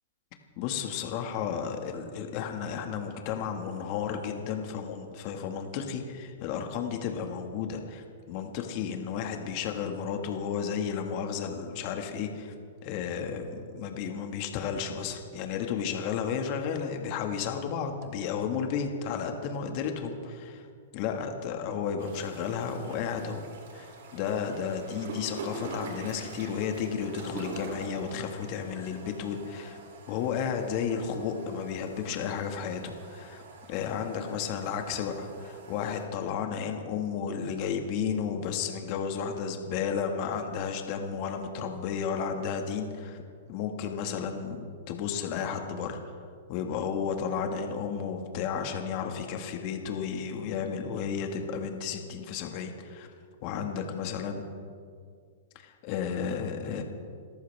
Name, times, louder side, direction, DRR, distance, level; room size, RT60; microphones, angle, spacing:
voice 1, 0.6-12.5 12.8-20.7 20.9-23.4 23.7-29.8 30.1-33.4 33.7-43.2 43.5-46.0 46.5-53.1 53.4-54.4 55.6-56.8, left 7 dB, 45° left, 4 dB, 1.9 m, -33 dB
sound 1, 22.0-36.0, right 3 dB, 70° right, 3.5 m, -45 dB
27.0 x 14.0 x 3.6 m, 2.1 s
hypercardioid pair, 130°, 0 cm